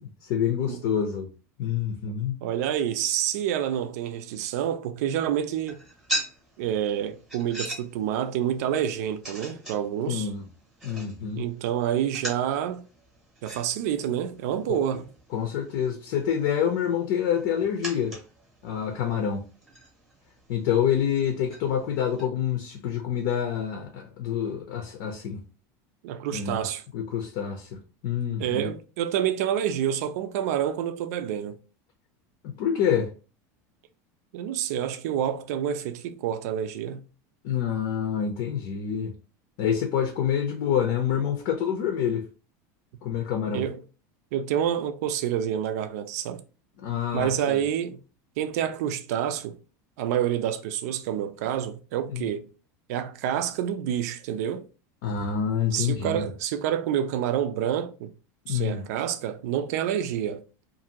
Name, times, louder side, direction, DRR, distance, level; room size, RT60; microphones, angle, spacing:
voice 1, 0.2-1.3 1.6-2.4 10.1-10.4 10.8-11.4 15.3-18.2 18.6-19.5 20.5-25.4 26.3-26.7 26.9-27.8 28.0-28.7 32.6-33.1 37.4-39.1 39.6-42.2 43.0-43.6 46.8-47.6 52.1-52.3 55.0-56.3 58.5-58.8, left 8 dB, 55° left, 0.6 m, -27 dB
voice 2, 2.4-5.8 6.6-10.3 11.4-12.9 13.4-15.1 26.0-26.8 28.4-31.6 34.3-37.0 43.5-43.8 44.3-46.4 47.1-48.0 48.4-49.6 50.0-52.5 52.9-54.7 55.7-58.1 58.5-60.4, right 10 dB, 70° right, 0.4 m, -28 dB
sound 1, 5.5-22.3, right 1 dB, 5° right, 0.8 m, -41 dB
2.6 x 2.5 x 2.8 m
supercardioid pair, 165°, 9 cm